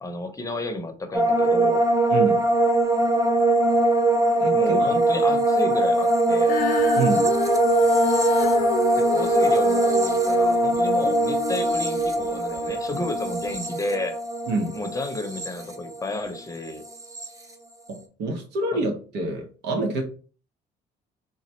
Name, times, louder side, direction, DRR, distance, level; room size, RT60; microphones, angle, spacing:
voice 1, 0.0-1.8 4.5-6.6 8.9-14.2 14.7-16.8, left 2 dB, 20° left, 6 dB, 0.7 m, -32 dB
sound 1, 1.1-16.4 16.6-17.3, right 2 dB, 20° right, 0.8 m, -22 dB
voice 2, 2.1-2.4 4.4-4.9 7.0-7.3 14.5-14.8 17.9-20.0, right 2 dB, 80° right, 5 dB, 1.1 m, -27 dB
Female singing, 6.4-12.8 13.5-13.6, left 8 dB, 55° left, 0.6 m, -30 dB
4.0 x 2.3 x 4.3 m, 0.39 s
cardioid pair, 110°, 17 cm